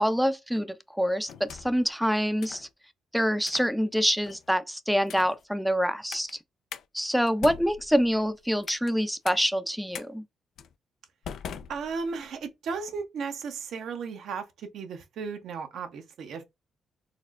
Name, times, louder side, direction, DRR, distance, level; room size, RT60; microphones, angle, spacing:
voice 1, 0.0-2.7 3.1-6.4 6.9-10.2, equal, ahead, 0.4 m, -26 dB
sound 1, 1.3-1.9 2.4-2.7 3.4-3.7 4.2-4.5 5.0-5.4 6.1-6.3 6.7-6.8 7.3-8.9 9.2-9.4 9.9-10.1 10.6-10.7 11.2-12.3, left 8 dB, 75° left, 0.3 m, -42 dB
voice 2, 11.7-16.4, right 5 dB, 75° right, 0.7 m, -35 dB
4.2 x 2.0 x 2.4 m
supercardioid pair, 55°, 0 cm